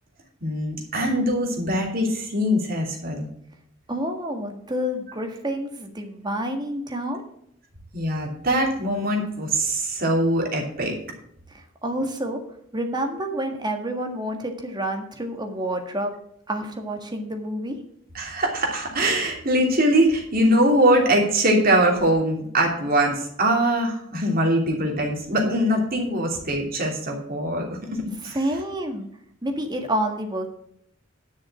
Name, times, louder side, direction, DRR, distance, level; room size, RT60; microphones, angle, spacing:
voice 1, 0.4-3.2 7.9-10.9 18.1-27.8 28.2-28.4, right 1 dB, 50° right, 1 dB, 2.9 m, -22 dB
voice 2, 3.9-7.2 11.5-12.4 12.7-16.2 16.5-17.8 28.2-29.1 29.4-30.5, right 1 dB, 20° right, 4 dB, 1.6 m, -28 dB
10.5 x 6.3 x 6.1 m, 0.69 s
head